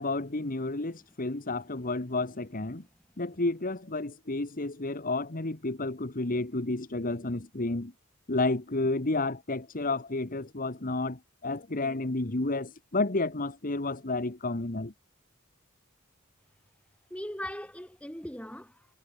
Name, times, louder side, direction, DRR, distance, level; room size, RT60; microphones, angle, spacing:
voice 1, 0.0-2.8 3.2-7.9 8.3-14.9, left 2 dB, 40° left, 1.4 m, -31 dB
voice 2, 17.1-18.9, equal, 5° left, 5.5 m, -40 dB
head